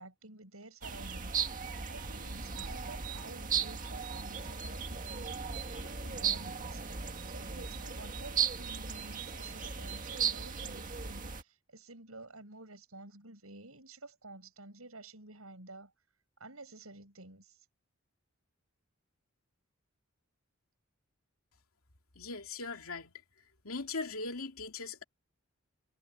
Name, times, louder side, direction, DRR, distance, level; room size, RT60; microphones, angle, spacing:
voice 1, 0.0-1.4 1.9-6.8 7.2-15.9 16.4-17.7, right 2 dB, 85° right, 7.7 m, -51 dB
sound 1, 0.8-11.4, right 6 dB, 40° right, 1.8 m, -36 dB
voice 2, 22.2-23.1 23.6-25.0, left 3 dB, 90° left, 2.6 m, -39 dB
head